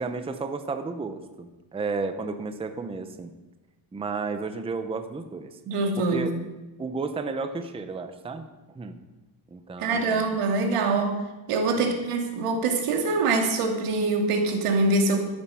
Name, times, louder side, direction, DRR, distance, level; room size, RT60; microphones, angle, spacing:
voice 1, 0.0-3.3 3.9-5.6 6.0-6.3 6.8-9.0 9.5-10.2 11.7-12.0, right 4 dB, 10° right, 8 dB, 0.6 m, -33 dB
voice 2, 5.7-6.3 9.8-11.2 11.5-15.3, right 3 dB, 90° right, 3 dB, 2.5 m, -24 dB
13.0 x 11.5 x 5.6 m, 1.1 s
cardioid pair, 170°, 50 cm